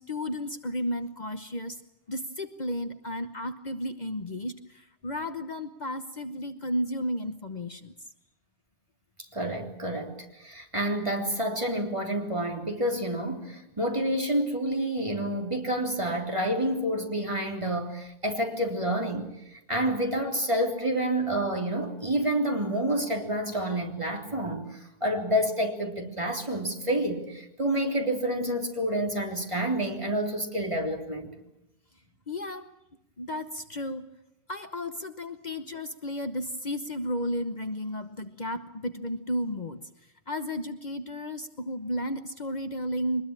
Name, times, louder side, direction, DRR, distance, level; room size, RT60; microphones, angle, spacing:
voice 1, 0.0-1.8 2.1-7.9 32.3-32.7 33.2-34.1 34.5-39.8 40.3-43.2, equal, 45° left, 9 dB, 1.1 m, -33 dB
voice 2, 9.3-31.3, right 1 dB, 30° right, 2 dB, 3.5 m, -29 dB
23.5 x 20.5 x 8.9 m, 0.85 s
omnidirectional pair, 1.0 m